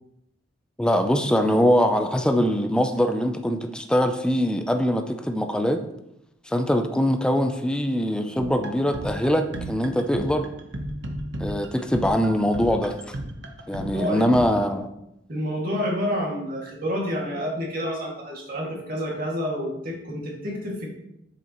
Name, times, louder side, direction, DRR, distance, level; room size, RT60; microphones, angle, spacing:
voice 1, 0.8-5.8 6.5-10.5 11.4-13.1 13.7-14.9, equal, 5° left, 5 dB, 0.5 m, -22 dB
sound 1, 8.4-14.5, right 1 dB, 70° right, 1.0 m, -34 dB
voice 2, 13.9-14.3 15.3-20.9, equal, 50° right, -2 dB, 2.2 m, -29 dB
8.3 x 6.7 x 3.0 m, 0.81 s
head